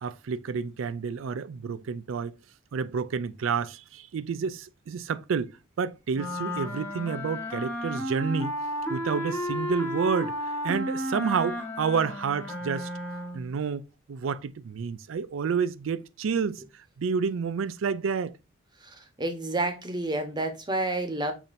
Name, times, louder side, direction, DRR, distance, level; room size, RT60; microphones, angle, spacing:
voice 1, 0.0-2.3 2.7-5.5 5.8-8.5 8.9-10.3 10.6-12.9 13.3-13.8 14.1-16.6 17.0-18.4, right 6 dB, 70° right, 0.4 m, -29 dB
sound 1, 6.1-13.5, equal, 10° left, 0.8 m, -33 dB
voice 2, 18.8-21.3, right 2 dB, 20° right, 0.9 m, -30 dB
6.8 x 2.8 x 2.5 m
head